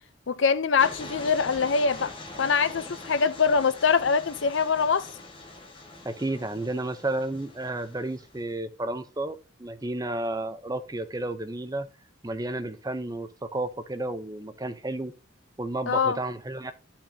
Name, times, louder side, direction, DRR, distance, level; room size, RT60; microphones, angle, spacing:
voice 1, 0.3-2.1 2.4-5.1 15.9-16.2, left 5 dB, 75° left, 0.6 m, -23 dB
sound 1, 0.8-8.4, left 2 dB, 25° left, 1.4 m, -43 dB
voice 2, 6.0-11.9 12.2-15.1 15.6-16.7, right 2 dB, 20° right, 0.6 m, -32 dB
12.0 x 5.8 x 2.7 m
head